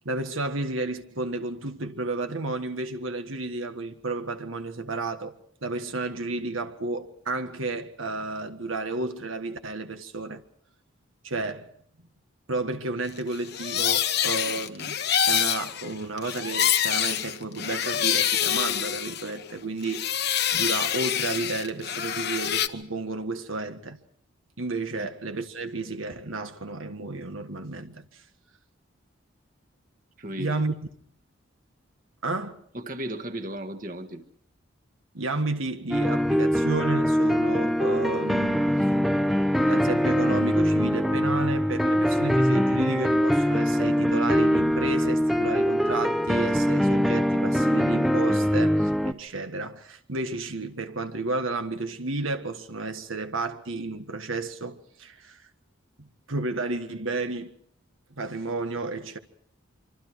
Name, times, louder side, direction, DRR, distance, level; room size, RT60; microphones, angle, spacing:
voice 1, 0.0-5.4 5.6-10.4 11.2-11.7 12.5-15.0 15.3-20.2 20.5-24.0 24.6-28.2 30.4-30.8 32.2-32.6 35.1-39.0 39.7-55.5 56.0-57.5 58.2-59.2, right 3 dB, 80° right, 1.6 m, -32 dB
sound 1, 13.3-19.5 19.8-22.7, left 9 dB, 50° left, 1.1 m, -26 dB
voice 2, 30.2-30.6 32.7-34.2, right 1 dB, 40° right, 1.6 m, -35 dB
sound 2, 35.9-49.1, equal, ahead, 0.8 m, -23 dB
25.5 x 25.5 x 4.7 m
head